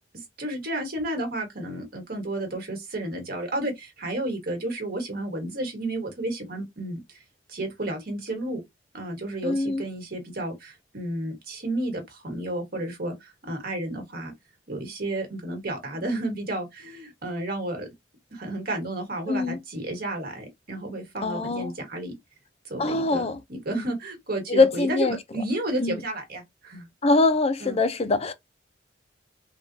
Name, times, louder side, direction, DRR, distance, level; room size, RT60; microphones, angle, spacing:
voice 1, 0.4-7.2 7.5-8.6 8.9-14.3 14.7-17.9 18.3-22.1 22.6-26.9 27.6-27.8, right 1 dB, 55° right, 1.5 m, -32 dB
voice 2, 9.4-9.8 19.3-19.6 21.2-21.7 22.8-23.4 24.5-25.2 25.8-26.0 27.0-28.3, left 3 dB, 35° left, 0.5 m, -23 dB
3.4 x 2.4 x 2.6 m
head